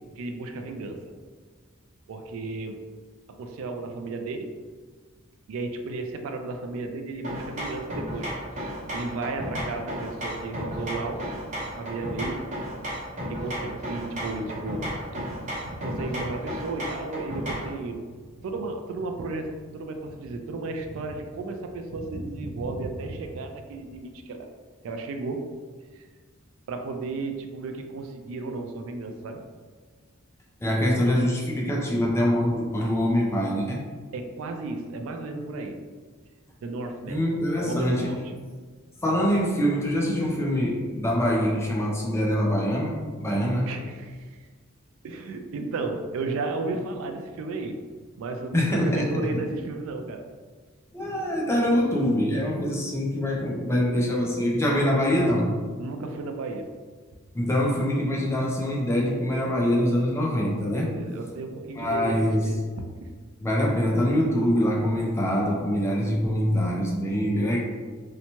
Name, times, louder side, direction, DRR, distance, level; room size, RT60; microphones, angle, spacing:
voice 1, 0.2-1.0 2.1-2.8 3.4-4.5 5.5-8.3 8.9-11.2 11.6-12.4 13.3-18.1 18.4-24.5 24.8-25.5 25.9-26.0 26.7-29.4 34.1-35.8 36.6-37.2 37.6-38.2 43.7-44.5 45.0-47.8 48.2-50.3 55.8-56.7 60.7-62.2 62.5-62.6 63.0-63.1, right 3 dB, 70° right, 5 dB, 0.3 m, -34 dB
sound 1, 7.2-17.8, equal, 35° right, 0.7 m, -34 dB
voice 2, 30.6-33.8 37.1-38.1 39.0-43.7 48.5-49.4 50.9-55.6 57.3-60.9 61.7-62.5 63.4-67.6, equal, 15° left, -2 dB, 0.4 m, -24 dB
2.8 x 2.1 x 2.9 m, 1.5 s
head